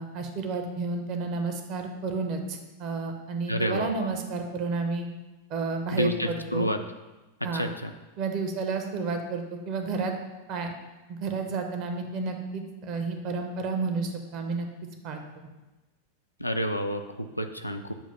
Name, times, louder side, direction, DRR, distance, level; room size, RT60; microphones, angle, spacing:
voice 1, 0.0-5.1 5.5-6.7 7.4-7.7 8.2-10.1 10.5-10.7 11.1-14.7 15.0-15.5, right 4 dB, 40° right, 5 dB, 0.8 m, -31 dB
voice 2, 3.5-4.1 5.9-6.8 7.5-7.7 16.4-17.9, equal, 90° left, 6 dB, 0.4 m, -29 dB
7.2 x 2.5 x 5.4 m, 1.1 s
figure-of-eight pair, 90°, 0 cm